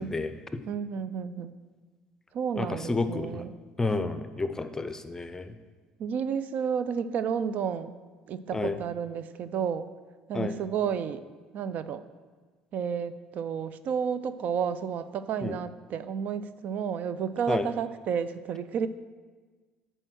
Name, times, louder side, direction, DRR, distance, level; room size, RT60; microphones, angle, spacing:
voice 1, 0.0-0.6 2.6-3.4 3.8-5.6 8.5-8.8 10.3-10.6 15.4-15.6 17.5-17.6, left 3 dB, 15° left, 10 dB, 0.6 m, -30 dB
voice 2, 0.7-1.6 2.3-3.5 6.0-8.0 8.3-9.9 10.3-11.2 11.5-12.0 12.7-18.9, right 7 dB, 60° right, 14 dB, 0.4 m, -31 dB
8.8 x 4.5 x 6.2 m, 1.4 s
supercardioid pair, 80°, 3 cm